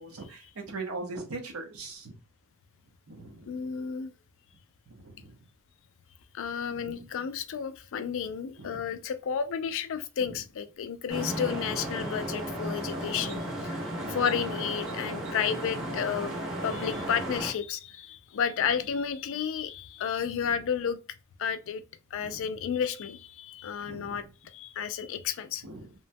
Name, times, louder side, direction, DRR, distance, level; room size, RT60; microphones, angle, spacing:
voice 1, 0.0-2.2 3.1-3.4 5.0-5.3 6.8-7.1 8.6-8.8 22.2-22.5 23.9-24.2 25.6-25.8, right 3 dB, 80° right, 0.8 m, -40 dB
voice 2, 3.4-4.1 6.3-16.3 16.6-21.0 21.4-21.8 22.1-25.7, left 7 dB, 65° left, 0.4 m, -32 dB
sound 1, 11.1-17.5, right 1 dB, 65° right, 1.4 m, -34 dB
2.9 x 2.2 x 2.6 m
head